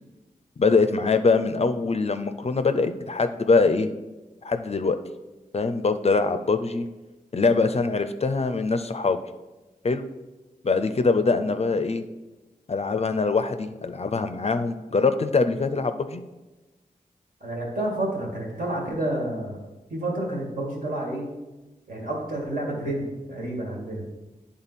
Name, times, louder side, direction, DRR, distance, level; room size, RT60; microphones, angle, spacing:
voice 1, 0.6-3.9 4.4-5.0 5.5-6.9 7.3-9.2 9.8-10.1 10.6-12.1 12.7-16.2, left 4 dB, 45° left, 10 dB, 0.4 m, -23 dB
voice 2, 17.4-19.6 19.9-21.3 21.9-24.0, right 1 dB, 65° right, -2 dB, 1.9 m, -29 dB
8.8 x 3.7 x 4.1 m, 1.1 s
wide cardioid pair, 60°, 15 cm